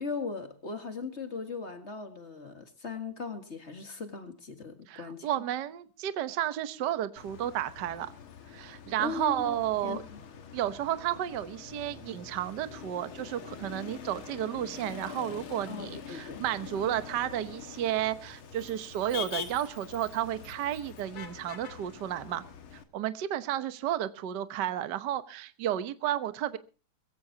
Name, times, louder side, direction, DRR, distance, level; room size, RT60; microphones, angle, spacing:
voice 1, 0.0-5.3 9.0-9.6 9.8-10.2 15.7-16.4, left 4 dB, 30° left, 7 dB, 1.4 m, -38 dB
voice 2, 4.9-8.1 8.5-10.0 10.5-22.4 22.7-26.6, right 11 dB, 75° right, 12 dB, 0.9 m, -32 dB
Motor vehicle (road), 7.2-22.8, left 8 dB, 50° left, 2.1 m, -44 dB
22.0 x 15.5 x 2.8 m, 0.34 s
omnidirectional pair, 3.3 m